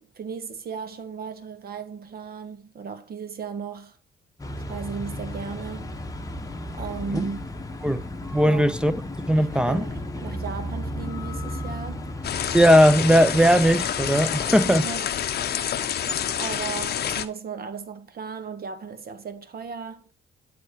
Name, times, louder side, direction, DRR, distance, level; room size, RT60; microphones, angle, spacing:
voice 1, 0.0-4.0 4.6-6.1 6.7-7.4 8.4-8.6 9.4-12.2 14.6-15.1 16.3-20.0, right 6 dB, 50° right, 0.8 m, -36 dB
sound 1, 4.4-14.9, left 1 dB, 15° left, 0.9 m, -34 dB
voice 2, 8.3-8.9 9.3-9.8 12.5-14.9, equal, 5° right, 0.5 m, -18 dB
sound 2, 12.2-17.3, left 9 dB, 55° left, 0.6 m, -28 dB
9.4 x 3.4 x 4.6 m
cardioid pair, 90°, 20 cm